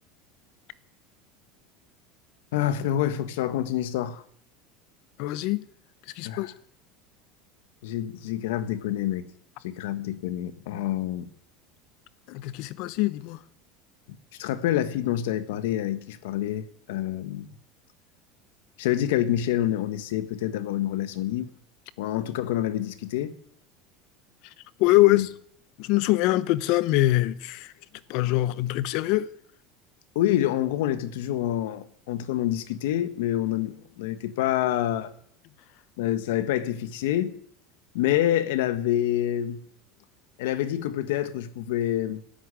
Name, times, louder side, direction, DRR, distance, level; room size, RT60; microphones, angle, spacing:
voice 1, 2.5-4.2 6.2-6.5 7.8-9.2 9.6-11.3 14.4-17.5 18.8-21.5 22.0-23.3 25.0-25.3 30.1-35.1 36.0-37.3 37.9-39.6 40.4-42.2, left 12 dB, 85° left, 1.3 m, -27 dB
voice 2, 5.2-5.6 6.2-6.5 12.3-13.4 24.8-25.3 25.8-27.7 28.1-29.3, left 17 dB, 60° left, 0.9 m, -23 dB
13.0 x 9.9 x 9.8 m
supercardioid pair, 145°, 0 cm